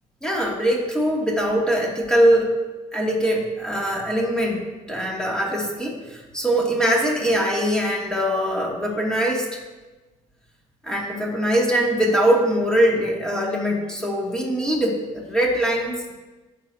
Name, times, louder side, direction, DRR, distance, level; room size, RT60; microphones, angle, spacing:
voice 1, 0.2-2.6 2.9-9.6 10.8-16.1, equal, 5° left, -3 dB, 2.5 m, -22 dB
16.5 x 6.6 x 2.8 m, 1.2 s
cardioid pair, 110°, 13 cm